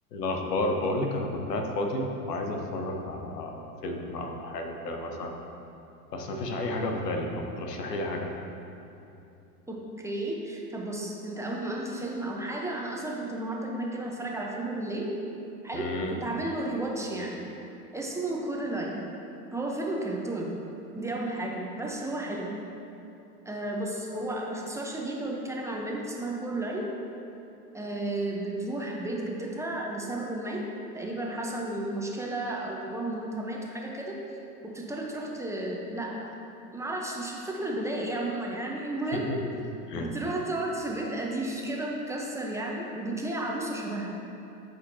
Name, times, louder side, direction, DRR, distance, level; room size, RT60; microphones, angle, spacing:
voice 1, 0.1-5.3 6.1-8.3 15.7-16.2 39.1-39.4 39.9-40.1, left 1 dB, 85° left, 2 dB, 1.1 m, -31 dB
voice 2, 9.7-15.1 15.6-17.5 17.9-19.0 19.5-20.6 20.9-22.5 23.4-26.9 27.7-30.6 30.9-34.2 34.6-36.4 36.7-39.3 39.9-44.2, right 1 dB, 5° right, -2 dB, 0.9 m, -33 dB
13.5 x 5.2 x 2.8 m, 2.9 s
hypercardioid pair, 95°, 47 cm